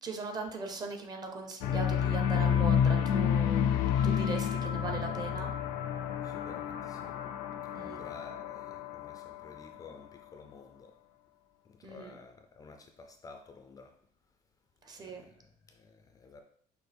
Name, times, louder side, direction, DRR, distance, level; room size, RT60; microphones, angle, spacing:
voice 1, 0.0-5.5 7.7-8.0 11.8-12.1 14.8-15.3, right 3 dB, 30° right, 0.7 m, -39 dB
sound 1, 1.6-9.8, left 8 dB, 90° left, 0.4 m, -30 dB
voice 2, 6.2-7.2 7.6-11.0 11.6-14.0 15.0-16.4, left 4 dB, 25° left, 0.4 m, -52 dB
6.1 x 2.5 x 3.4 m
cardioid pair, 150°, 14 cm